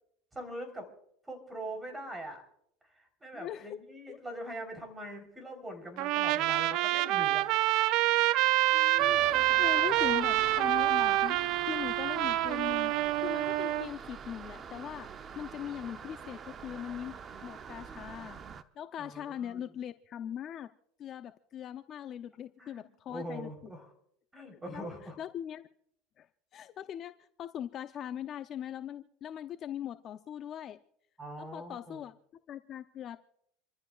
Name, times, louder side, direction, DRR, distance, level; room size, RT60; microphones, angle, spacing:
voice 1, 0.3-0.9 1.3-2.4 3.0-7.5 19.0-19.6 22.6-23.9 24.3-25.2 31.2-32.0, right 1 dB, 10° right, 4 dB, 3.8 m, -42 dB
voice 2, 3.3-3.8 4.1-4.2 8.7-11.4 11.6-12.9 13.2-17.2 17.4-18.4 18.8-20.7 21.0-23.5 24.7-24.9 25.2-25.7 26.2-26.3 26.5-30.8 31.4-32.2 32.5-33.2, left 10 dB, 40° left, 10 dB, 0.6 m, -40 dB
Trumpet, 6.0-13.9, right 15 dB, 60° right, 0.5 m, -27 dB
sound 1, 9.0-18.6, right 6 dB, 30° right, 0.8 m, -45 dB
27.5 x 14.0 x 2.4 m, 0.72 s
supercardioid pair, 125°, 0 cm